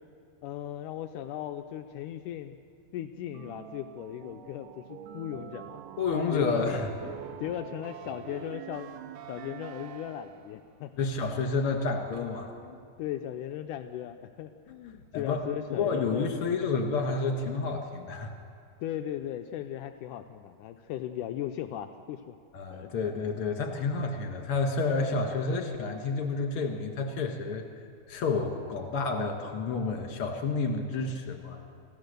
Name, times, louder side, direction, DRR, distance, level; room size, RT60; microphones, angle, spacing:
voice 1, 0.4-2.6 2.9-5.8 6.3-8.9 9.3-11.1 12.6-16.6 18.8-22.4 22.7-22.9, left 11 dB, 85° left, 7 dB, 1.8 m, -37 dB
sound 1, 3.3-10.6, right 10 dB, 70° right, 2.2 m, -45 dB
voice 2, 6.0-6.9 11.0-12.5 15.1-18.3 22.5-27.6 28.1-31.6, left 4 dB, 50° left, 4 dB, 1.9 m, -30 dB
27.5 x 15.5 x 6.7 m, 2.3 s
omnidirectional pair, 4.3 m